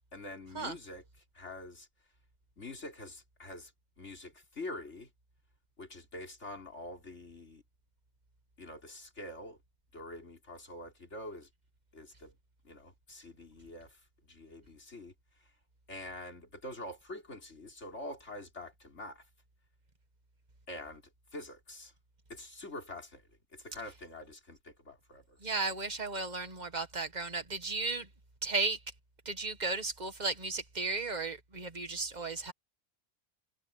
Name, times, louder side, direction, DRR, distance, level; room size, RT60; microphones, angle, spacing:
voice 1, 0.1-1.0 1.3-1.9 2.6-3.7 4.0-5.1 5.8-7.6 8.6-9.6 9.9-11.5 11.9-12.3 12.6-14.0 14.3-15.1 15.9-19.2 20.7-21.0 21.3-21.9 22.3-23.2 23.5-25.4, left 1 dB, 75° left, 4.5 m, -45 dB
voice 2, 25.4-28.1 28.4-28.8 29.3-32.5, right 3 dB, 35° right, 1.9 m, -34 dB
omnidirectional pair, 1.2 m